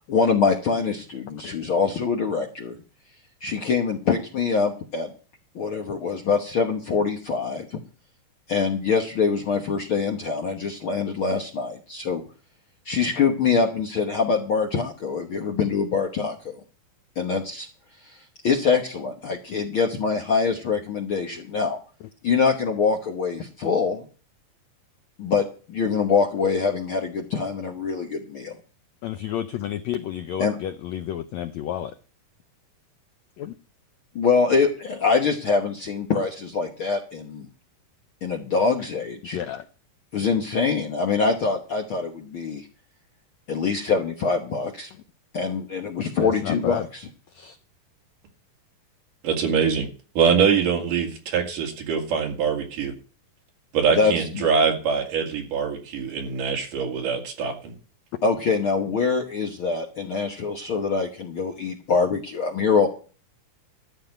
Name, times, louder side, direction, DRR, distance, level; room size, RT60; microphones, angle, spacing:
voice 1, 0.1-2.8 3.4-5.1 5.5-7.8 8.5-12.2 12.8-16.5 17.2-17.7 18.4-21.8 22.2-24.1 25.2-28.5 30.4-30.6 34.1-37.5 38.2-39.4 40.1-42.7 43.5-44.9 45.3-47.1 53.9-54.4 58.2-62.9, left 5 dB, 60° left, 1.4 m, -24 dB
voice 2, 29.0-31.9 33.4-33.5 39.3-39.6 46.2-46.8 47.4-47.5, left 11 dB, 85° left, 1.6 m, -31 dB
voice 3, 49.2-49.9 50.2-52.9 53.7-57.7, right 6 dB, 70° right, 3.8 m, -23 dB
13.5 x 5.0 x 9.1 m
omnidirectional pair, 4.0 m